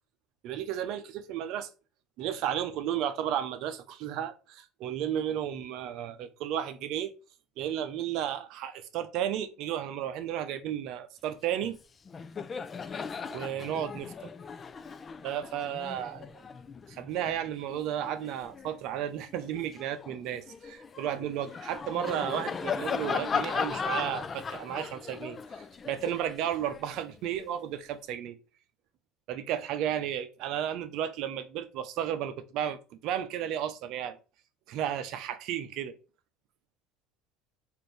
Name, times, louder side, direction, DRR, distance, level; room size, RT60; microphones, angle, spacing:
voice 1, 0.4-1.7 2.2-7.1 7.6-11.8 13.3-14.3 15.2-16.4 16.9-28.4 29.3-34.2 34.7-36.0, right 10 dB, 65° right, 0.6 m, -33 dB
Laughter, 11.6-11.8 12.1-18.8 19.3-27.5, left 6 dB, 30° left, 0.3 m, -37 dB
4.1 x 2.6 x 3.2 m
supercardioid pair, 95°, 0 cm